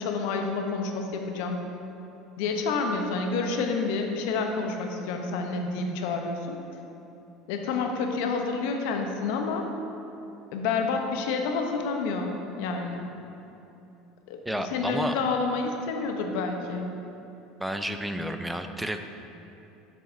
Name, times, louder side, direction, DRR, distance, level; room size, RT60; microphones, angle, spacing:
voice 1, 0.0-1.6 2.4-6.6 7.5-9.8 10.5-13.1 14.3-16.9, left 4 dB, 75° left, 3 dB, 0.7 m, -29 dB
voice 2, 14.5-15.1 17.6-19.0, right 1 dB, 5° right, 7 dB, 0.4 m, -31 dB
7.2 x 6.3 x 2.6 m, 2.9 s
supercardioid pair, 110°, 0 cm